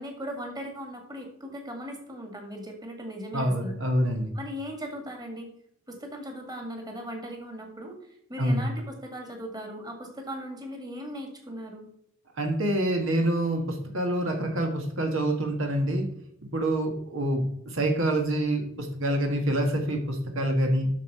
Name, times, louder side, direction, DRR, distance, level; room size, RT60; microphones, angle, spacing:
voice 1, 0.0-3.7 4.3-5.5 5.9-8.0 8.3-11.9, equal, 20° right, 2 dB, 2.1 m, -38 dB
voice 2, 3.3-4.3 8.4-8.7 12.4-16.1 16.4-20.9, right 1 dB, 70° right, 3 dB, 1.6 m, -26 dB
8.3 x 6.5 x 5.5 m, 0.72 s
head